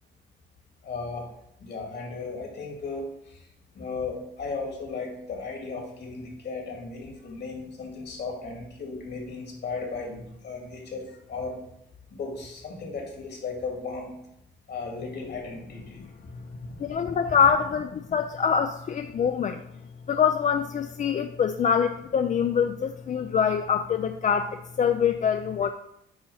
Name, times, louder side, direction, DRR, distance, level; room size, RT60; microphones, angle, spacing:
voice 1, 0.8-1.3 1.6-3.0 3.8-11.6 12.1-14.1 14.7-16.0 17.3-17.4, left 4 dB, 55° left, 1 dB, 2.1 m, -35 dB
voice 2, 16.8-19.6 20.1-25.7, left 7 dB, 40° left, 8 dB, 0.4 m, -24 dB
8.6 x 2.9 x 5.6 m, 0.79 s
cardioid pair, 90°, 20 cm